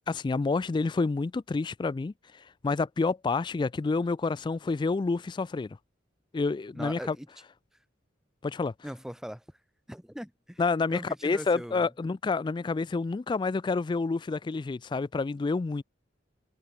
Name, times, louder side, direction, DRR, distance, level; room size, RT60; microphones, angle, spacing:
voice 1, 0.1-2.1 2.6-5.8 6.3-7.2 8.4-8.7 10.6-15.8, left 4 dB, 25° left, 0.3 m, -28 dB
voice 2, 6.7-7.3 8.8-9.4 9.9-10.6 10.9-11.9, equal, 5° right, 1.7 m, -40 dB
head